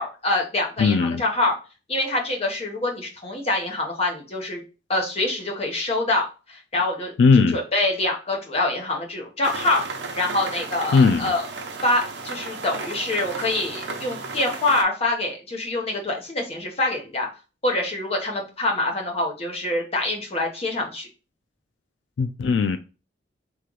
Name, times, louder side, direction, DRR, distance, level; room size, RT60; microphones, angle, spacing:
voice 1, 0.0-1.6 1.9-4.6 4.9-7.1 7.5-9.8 10.2-11.5 11.8-17.3 17.6-21.1, left 2 dB, 35° left, 1.0 m, -25 dB
voice 2, 0.8-1.2 7.2-7.6 10.9-11.3 22.2-22.8, left 4 dB, 85° left, 0.3 m, -18 dB
sound 1, 9.4-14.8, right 3 dB, 70° right, 0.7 m, -34 dB
3.2 x 3.1 x 3.7 m
head